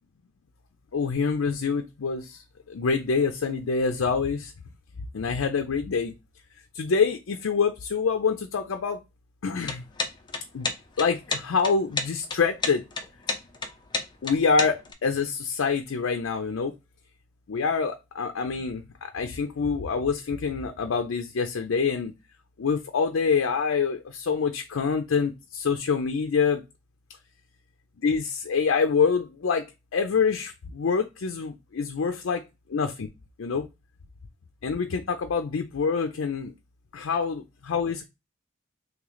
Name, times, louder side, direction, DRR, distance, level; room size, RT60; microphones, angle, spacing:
voice 1, 0.9-4.5 5.1-6.1 6.7-9.0 9.4-9.8 10.5-10.7 11.0-12.8 14.2-16.7 17.5-22.1 22.6-26.6 28.0-29.6 29.9-32.4 32.7-33.1 33.4-33.6 34.6-36.5 36.9-38.0, left 5 dB, 80° left, 5 dB, 0.5 m, -26 dB
sound 1, 9.5-14.9, left 4 dB, 20° left, 0.5 m, -30 dB
3.3 x 3.1 x 3.8 m, 0.24 s
head